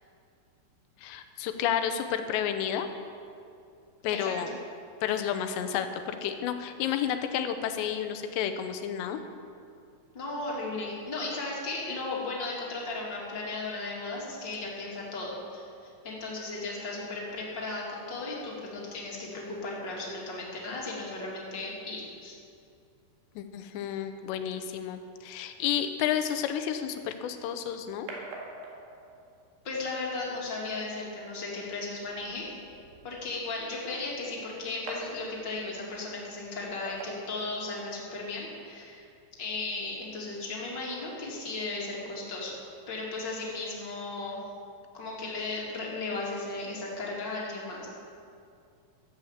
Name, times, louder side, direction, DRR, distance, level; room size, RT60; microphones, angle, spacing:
voice 1, 1.0-2.9 4.0-4.6 5.0-9.2 23.4-28.1, left 9 dB, 80° left, 8 dB, 3.0 m, -31 dB
voice 2, 10.1-22.4 29.6-32.5 33.0-39.0 39.4-42.5 42.9-44.4 44.9-47.9, left 3 dB, 35° left, -3 dB, 2.0 m, -36 dB
sound 1, 27.1-38.1, right 2 dB, 70° right, 3.7 m, -48 dB
13.5 x 8.4 x 7.2 m, 2.5 s
omnidirectional pair, 5.0 m